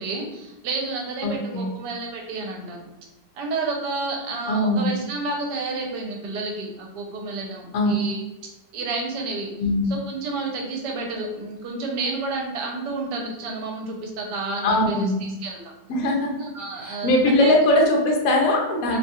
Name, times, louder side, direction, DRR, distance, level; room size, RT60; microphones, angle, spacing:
voice 1, 0.0-2.8 3.3-8.2 8.7-9.5 9.9-15.1 15.4-15.7 16.4-17.5 18.9-19.0, right 3 dB, 80° right, 1 dB, 1.2 m, -30 dB
voice 2, 1.2-1.7 4.5-5.0 7.7-7.9 9.6-9.9 14.6-15.3 15.9-16.3 16.8-19.0, left 1 dB, 70° left, 0 dB, 0.9 m, -21 dB
2.9 x 2.3 x 2.8 m, 0.95 s
omnidirectional pair, 1.9 m